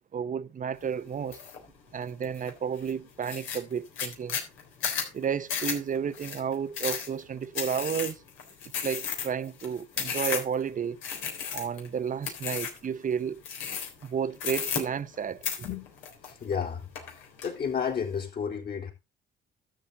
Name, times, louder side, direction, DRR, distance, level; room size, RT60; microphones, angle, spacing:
voice 1, 0.1-1.4 1.9-4.4 5.1-8.2 8.8-11.0 11.5-13.4 14.0-15.4, right 7 dB, 40° right, 0.8 m, -32 dB
sound 1, 1.3-1.6 2.0-2.5 2.9-3.0 3.2-10.6 11.0-11.9 12.2-12.8 13.4-14.1 14.4-15.2 15.4-16.6 16.9-17.5, left 7 dB, 80° left, 3.6 m, -33 dB
voice 2, 16.4-16.8 17.4-18.9, left 7 dB, 50° left, 4.0 m, -31 dB
12.5 x 7.9 x 3.9 m
supercardioid pair, 70°, 21 cm